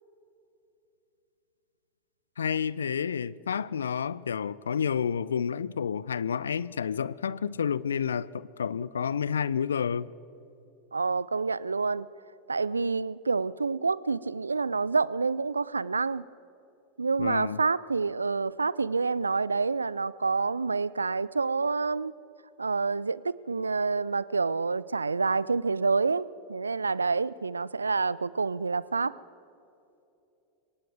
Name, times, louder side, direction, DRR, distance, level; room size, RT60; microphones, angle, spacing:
voice 1, 2.4-10.1 17.2-17.6, left 7 dB, 75° left, 0.4 m, -30 dB
voice 2, 10.9-12.1 12.5-16.2 17.0-22.2 22.6-29.2, right 4 dB, 85° right, 0.3 m, -28 dB
23.0 x 18.0 x 3.5 m
figure-of-eight pair, 85°, 0 cm